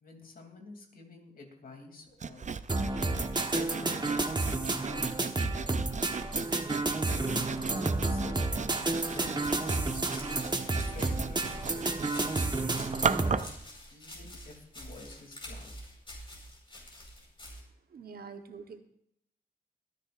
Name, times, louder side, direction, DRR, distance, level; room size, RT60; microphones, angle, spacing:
voice 1, 0.0-2.5 3.5-5.3 7.1-8.4 8.7-10.0 10.9-11.8 12.1-13.5 13.9-15.7, left 2 dB, 70° left, 2 dB, 3.0 m, -48 dB
Sawing, 2.2-13.6, right 6 dB, 50° right, 0.6 m, -38 dB
sound 1, 2.7-13.4, right 2 dB, 30° right, 1.3 m, -31 dB
sound 2, 8.9-17.6, left 1 dB, 35° left, 4.8 m, -47 dB
voice 2, 17.9-18.8, right 5 dB, 85° right, 7 dB, 1.2 m, -45 dB
24.5 x 9.9 x 2.6 m, 0.72 s
cardioid pair, 70°, 16 cm